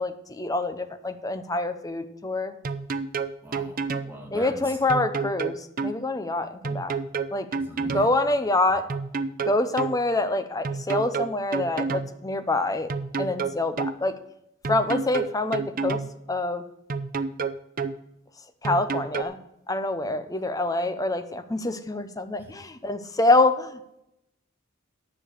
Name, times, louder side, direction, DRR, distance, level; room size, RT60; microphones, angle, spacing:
voice 1, 0.0-2.5 4.3-5.5 5.8-6.9 7.3-7.5 7.9-8.8 9.5-12.9 13.2-14.1 14.7-16.0 16.3-16.6 18.6-19.4 19.7-23.8, left 2 dB, 20° left, 9 dB, 0.8 m, -26 dB
sound 1, 2.6-4.1 4.9-6.0 6.6-8.1 8.9-10.0 10.6-12.1 12.9-14.0 14.6-16.1 16.9-18.0 18.6-19.2, right 4 dB, 45° right, 0.6 m, -29 dB
voice 2, 3.4-4.8 7.6-8.0 20.1-20.2 22.4-22.5, equal, 10° right, 1 dB, 1.9 m, -41 dB
10.0 x 6.7 x 6.7 m, 0.81 s
head